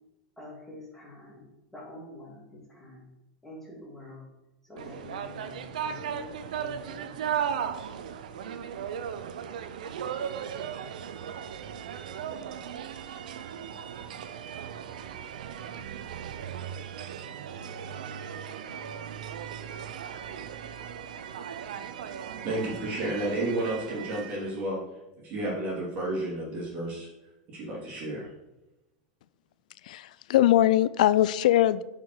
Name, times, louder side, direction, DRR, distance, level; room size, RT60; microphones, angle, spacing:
voice 1, 0.4-3.0 3.4-4.3 4.6-7.2, left 2 dB, 5° left, -3 dB, 2.5 m, -46 dB
sound 1, 4.8-24.6, right 8 dB, 85° right, 0.6 m, -37 dB
voice 2, 22.4-24.8 25.2-27.1 27.5-28.3, right 1 dB, 35° right, -5 dB, 2.7 m, -31 dB
voice 3, 29.9-31.8, left 13 dB, 75° left, 17 dB, 0.4 m, -21 dB
5.6 x 4.9 x 6.3 m, 0.95 s
supercardioid pair, 130°, 4 cm